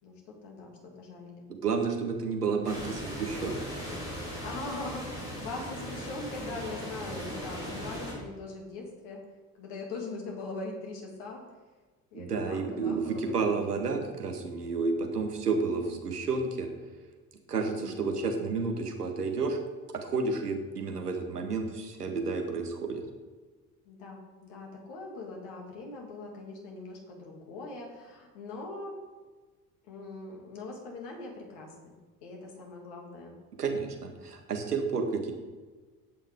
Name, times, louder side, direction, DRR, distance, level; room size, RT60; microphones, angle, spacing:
voice 1, 0.0-1.5 4.4-9.2 9.5-11.4 12.1-13.2 13.5-14.0 17.6-18.0 23.8-29.0 29.9-31.9 32.2-33.4, left 3 dB, 60° left, 0 dB, 2.5 m, -41 dB
voice 2, 1.6-3.8 12.1-16.7 17.5-19.6 19.9-23.0 33.6-35.3, right 4 dB, 85° right, 4 dB, 1.1 m, -31 dB
sound 1, 2.6-8.1, equal, 85° left, 2.7 m, -38 dB
11.0 x 8.5 x 3.6 m, 1.3 s
figure-of-eight pair, 55°, 46 cm